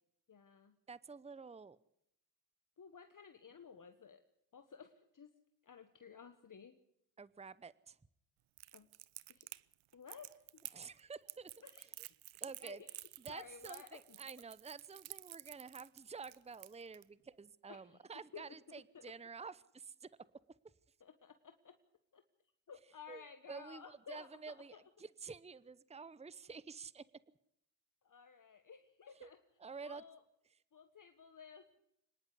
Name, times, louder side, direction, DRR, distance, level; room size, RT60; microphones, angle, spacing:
voice 1, 0.3-0.8 2.8-4.2 4.5-5.3 5.6-6.8 8.7-8.9 9.3-9.5 9.9-10.6 11.6-11.8 12.6-13.0 13.3-14.2 17.7-18.0 18.3-19.1 21.0-21.8 22.1-22.2 22.7-24.8 28.0-29.4 29.8-30.2 30.7-31.8, left 6 dB, 40° left, 8 dB, 1.5 m, -55 dB
voice 2, 0.9-1.8 7.2-8.0 10.7-11.5 12.4-12.8 13.2-20.1 23.1-27.1 29.2-29.3 29.6-30.0, right 5 dB, 15° right, 18 dB, 0.8 m, -50 dB
Crackle, 8.6-17.0, right 16 dB, 75° right, 0.8 m, -51 dB
25.0 x 10.5 x 9.7 m, 0.76 s
supercardioid pair, 60°, 48 cm